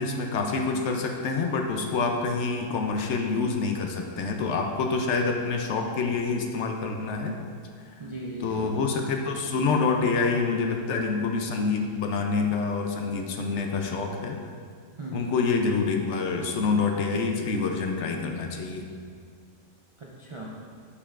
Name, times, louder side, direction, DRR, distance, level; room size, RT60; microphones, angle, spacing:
voice 1, 0.0-7.4 8.4-14.4 15.1-18.9, left 4 dB, 70° left, 3 dB, 0.9 m, -27 dB
voice 2, 8.0-8.8 15.0-15.3 20.0-20.6, right 1 dB, 45° right, -4 dB, 0.4 m, -38 dB
8.4 x 5.4 x 2.4 m, 2.1 s
omnidirectional pair, 1.3 m